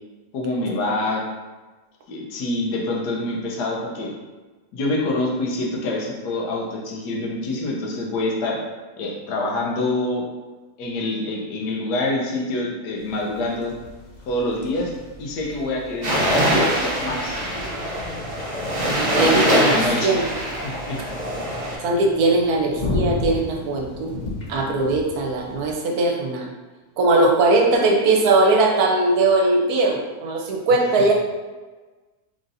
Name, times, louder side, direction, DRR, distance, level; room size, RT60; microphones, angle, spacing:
voice 1, 0.3-1.2 2.1-4.1 4.7-8.6 9.0-10.2 10.8-13.7 14.3-14.9 15.2-17.4 19.2-20.2 20.6-21.0 31.0-31.1, left 2 dB, 85° left, -1 dB, 1.4 m, -26 dB
sound 1, 13.0-25.7, left 2 dB, 60° left, 0.4 m, -34 dB
sound 2, 16.0-21.8, equal, 35° right, 0.8 m, -23 dB
voice 2, 18.8-20.2 21.8-24.1 24.5-26.5 27.0-31.1, right 2 dB, 75° right, 0 dB, 1.1 m, -20 dB
4.0 x 3.6 x 2.6 m, 1.3 s
omnidirectional pair, 1.7 m